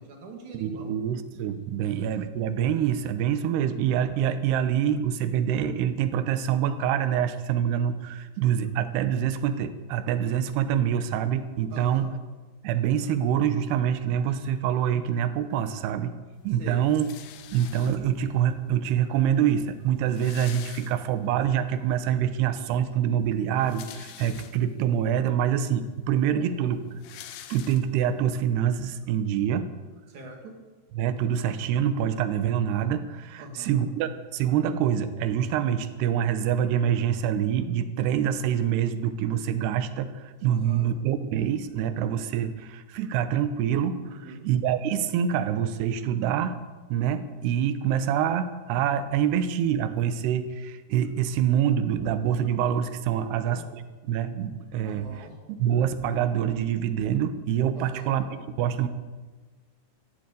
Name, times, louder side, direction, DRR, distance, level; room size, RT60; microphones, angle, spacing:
voice 1, 0.0-1.0 11.7-12.1 16.6-16.8 26.3-26.5 30.1-30.5 33.4-33.8 40.5-40.9 44.1-44.5 53.2-53.6 54.8-55.3 57.7-58.2, right 2 dB, 55° right, 2 dB, 3.1 m, -42 dB
voice 2, 0.5-12.1 12.6-16.1 16.4-17.1 17.5-27.0 27.5-29.7 30.9-44.0 44.5-46.6 46.9-55.0 55.5-58.2 58.6-58.9, right 9 dB, 90° right, 11 dB, 3.0 m, -26 dB
sound 1, 16.9-18.3 19.2-19.3 19.5-19.6 19.8-21.4 21.9-22.0 23.4-24.9 25.5-25.6 25.9-28.2, left 11 dB, 90° left, 3.1 m, -46 dB
14.5 x 11.5 x 8.3 m, 1.3 s
omnidirectional pair, 4.6 m